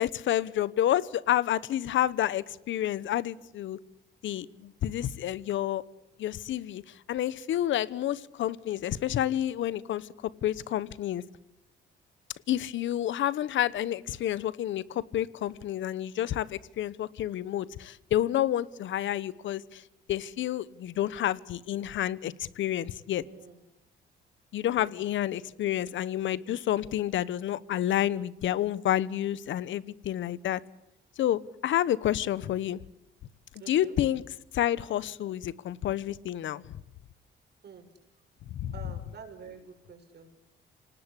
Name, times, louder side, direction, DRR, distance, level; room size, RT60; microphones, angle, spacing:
voice 1, 0.0-3.8 4.2-5.8 6.2-6.8 7.1-10.1 10.4-11.2 12.5-19.8 20.1-23.2 24.5-30.6 31.2-32.8 33.7-34.2 34.5-36.6 38.5-38.7, left 12 dB, 75° left, 20 dB, 1.0 m, -29 dB
voice 2, 23.2-23.6 24.7-25.1 33.6-34.0 37.6-37.8 38.7-40.3, right 6 dB, 55° right, 5 dB, 6.6 m, -48 dB
27.0 x 18.5 x 8.5 m, 0.88 s
cardioid pair, 90°, 20 cm